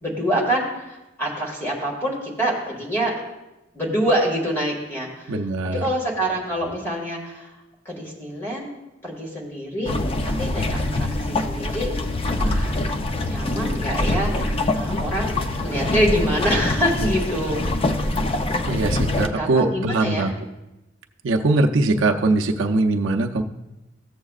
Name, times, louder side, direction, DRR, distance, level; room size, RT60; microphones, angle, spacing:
voice 1, 0.0-3.2 3.7-5.3 5.7-7.5 7.9-8.7 9.0-9.9 10.2-11.9 12.4-12.8 13.2-17.6 17.9-18.1 19.1-20.3, equal, 10° left, -3 dB, 1.9 m, -26 dB
voice 2, 5.3-5.8 18.7-20.3 21.2-23.4, right 2 dB, 80° right, 3 dB, 0.5 m, -21 dB
sound 1, 9.8-19.3, left 2 dB, 30° left, 0.5 m, -24 dB
15.0 x 7.2 x 2.4 m, 0.98 s
head